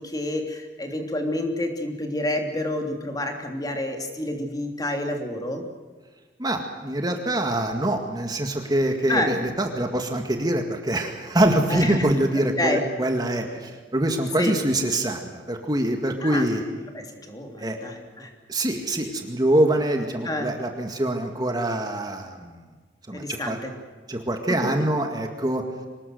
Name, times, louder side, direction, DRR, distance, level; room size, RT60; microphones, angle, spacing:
voice 1, 0.0-5.6 9.1-9.3 11.7-12.1 12.3-12.8 14.4-14.6 16.2-16.5 16.9-18.3 20.2-20.5 23.1-23.7 24.5-24.7, left 1 dB, 20° left, 4 dB, 3.2 m, -28 dB
voice 2, 6.4-16.6 17.6-17.8 18.5-22.6 23.1-23.6 24.1-25.6, right 1 dB, 20° right, 4 dB, 2.1 m, -24 dB
25.0 x 20.0 x 8.0 m, 1.4 s
head